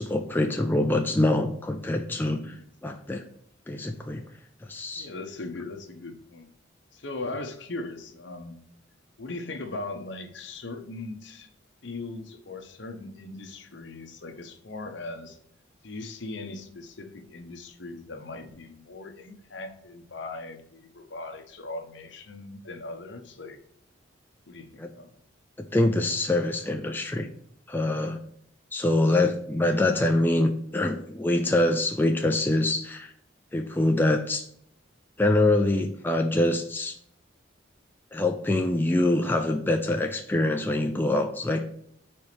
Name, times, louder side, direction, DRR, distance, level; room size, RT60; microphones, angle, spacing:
voice 1, 0.0-2.6 2.8-3.2 3.7-4.2 4.7-5.1 24.8-24.9 25.6-27.3 27.7-28.2 28.7-33.1 33.5-34.5 35.2-37.0 38.1-41.9, left 1 dB, 10° left, 4 dB, 0.3 m, -25 dB
voice 2, 5.0-6.5 6.9-8.6 9.2-11.5 11.8-15.4 15.8-23.6 24.5-25.1, left 2 dB, 65° left, 6 dB, 0.9 m, -39 dB
4.4 x 4.2 x 5.0 m, 0.67 s
head